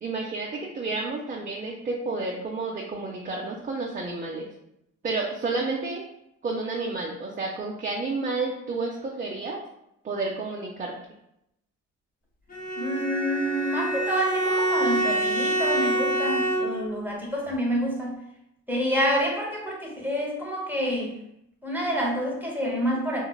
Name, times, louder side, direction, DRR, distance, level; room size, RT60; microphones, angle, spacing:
voice 1, 0.0-4.5 5.0-6.0 6.4-9.6 10.0-10.9, right 3 dB, 25° right, -1 dB, 0.4 m, -30 dB
Bowed string instrument, 12.5-17.0, right 1 dB, 30° left, 0.6 m, -26 dB
voice 2, 12.8-18.2 18.7-21.1 21.6-23.2, equal, 5° right, -2 dB, 0.8 m, -28 dB
3.1 x 2.4 x 2.3 m, 0.81 s
cardioid pair, 90°, 30 cm